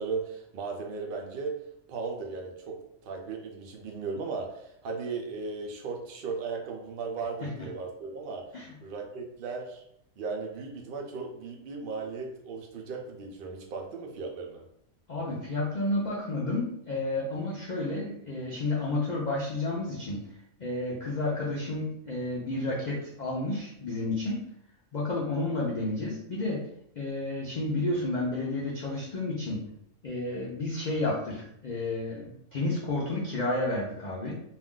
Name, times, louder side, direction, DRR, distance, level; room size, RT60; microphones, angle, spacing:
voice 1, 0.0-1.6 1.9-9.8 10.2-14.7, right 4 dB, 75° right, 1 dB, 0.5 m, -36 dB
voice 2, 15.1-20.3 20.6-24.5 24.9-26.6 27.0-29.7 30.0-34.3, left 2 dB, 75° left, -5 dB, 0.4 m, -31 dB
2.5 x 2.3 x 3.6 m, 0.75 s
omnidirectional pair, 1.5 m